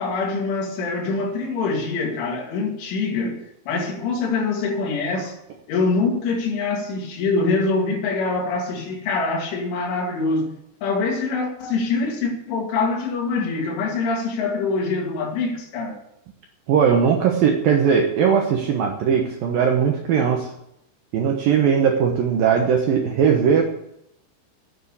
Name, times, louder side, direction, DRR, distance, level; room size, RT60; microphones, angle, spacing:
voice 1, 0.0-5.4 5.7-10.5 10.8-16.0, left 3 dB, 75° left, 5.0 m, -24 dB
voice 2, 16.7-20.5 21.1-23.6, right 7 dB, 70° right, 2.2 m, -19 dB
10.0 x 9.6 x 8.6 m
omnidirectional pair, 5.6 m